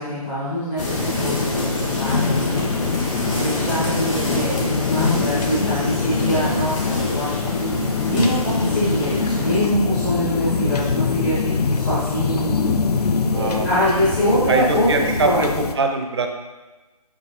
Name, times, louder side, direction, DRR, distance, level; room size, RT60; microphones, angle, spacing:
voice 1, 0.0-2.7 3.3-12.6 12.9-15.5, equal, 5° left, -11 dB, 0.5 m, -24 dB
sound 1, 0.8-15.7, left 5 dB, 80° left, 0.4 m, -23 dB
sound 2, 0.8-9.6, left 1 dB, 50° left, 1.1 m, -29 dB
voice 2, 13.3-13.7 14.5-16.3, right 3 dB, 45° right, 4 dB, 0.5 m, -23 dB
6.0 x 2.9 x 2.8 m, 1.2 s
figure-of-eight pair, 155°, 20 cm